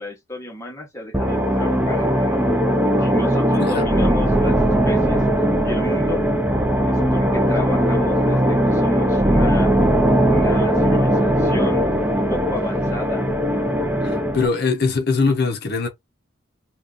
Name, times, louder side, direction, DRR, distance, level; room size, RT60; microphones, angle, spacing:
voice 1, 0.0-2.4 3.0-5.2 5.6-6.3 6.9-9.7 10.3-11.9 12.3-13.3, left 2 dB, 15° left, 1.0 m, -32 dB
sound 1, 1.1-14.5, equal, 10° right, 0.4 m, -19 dB
voice 2, 14.0-15.9, left 4 dB, 55° left, 0.6 m, -21 dB
2.7 x 2.3 x 3.5 m
head